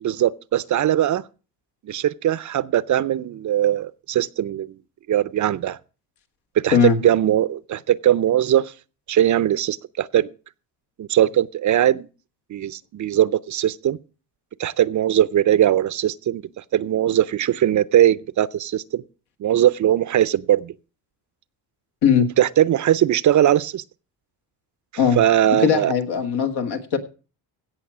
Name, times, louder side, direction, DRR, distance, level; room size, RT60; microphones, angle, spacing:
voice 1, 0.0-1.2 1.9-4.7 5.1-5.8 6.6-8.7 9.1-10.3 11.0-12.1 12.5-14.0 14.6-19.0 19.4-20.7 22.4-23.8 25.2-25.9, right 11 dB, 45° right, 0.5 m, -20 dB
voice 2, 25.6-27.0, left 7 dB, 70° left, 1.9 m, -19 dB
16.5 x 6.2 x 6.0 m
cardioid pair, 125°, 41 cm